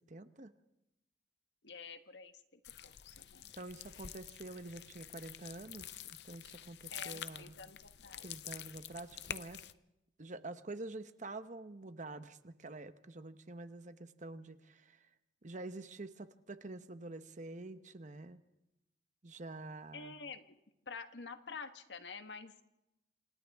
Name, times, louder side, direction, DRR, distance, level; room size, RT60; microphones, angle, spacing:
voice 1, 0.1-0.5 3.5-6.0 6.2-7.5 8.2-9.6 10.2-15.1 15.4-18.4 19.2-20.1, right 2 dB, 45° right, 10 dB, 1.0 m, -47 dB
voice 2, 1.6-3.5 6.9-8.3 19.9-20.6 20.9-22.6, left 5 dB, 90° left, 8 dB, 1.4 m, -49 dB
sound 1, 2.6-9.7, left 10 dB, 70° left, 0.7 m, -48 dB
28.0 x 27.0 x 3.6 m, 0.90 s
head